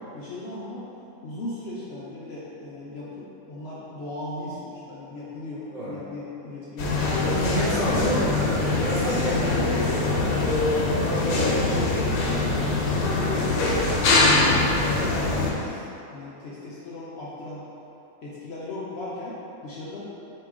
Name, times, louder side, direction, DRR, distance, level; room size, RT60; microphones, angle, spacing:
voice 1, 0.1-0.9 1.2-7.0 7.6-8.2 8.8-13.6 14.1-15.8 16.1-17.7 18.2-20.0, left 2 dB, 60° left, -7 dB, 0.7 m, -36 dB
sound 1, 6.8-15.5, left 2 dB, 80° left, 1.1 m, -23 dB
voice 2, 7.2-9.7 11.0-11.5 14.3-14.7, right 1 dB, 40° right, -11 dB, 0.6 m, -29 dB
4.7 x 2.9 x 3.5 m, 2.9 s
omnidirectional pair, 1.5 m